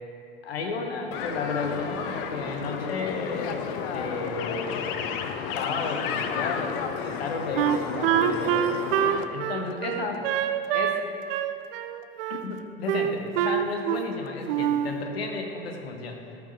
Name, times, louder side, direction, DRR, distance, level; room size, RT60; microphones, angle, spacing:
voice 1, 0.4-3.6 3.8-4.9 5.5-8.7 9.3-10.3 10.7-11.0 12.4-16.4, left 4 dB, 75° left, 3 dB, 1.1 m, -33 dB
sound 1, 1.1-9.2, left 6 dB, 60° left, 0.7 m, -32 dB
Wind instrument woodwind instrument, 7.6-11.0 11.3-12.4 12.9-14.2 14.5-14.9, right 10 dB, 65° right, 0.5 m, -25 dB
13.5 x 5.4 x 4.0 m, 2.5 s
figure-of-eight pair, 75°, 31 cm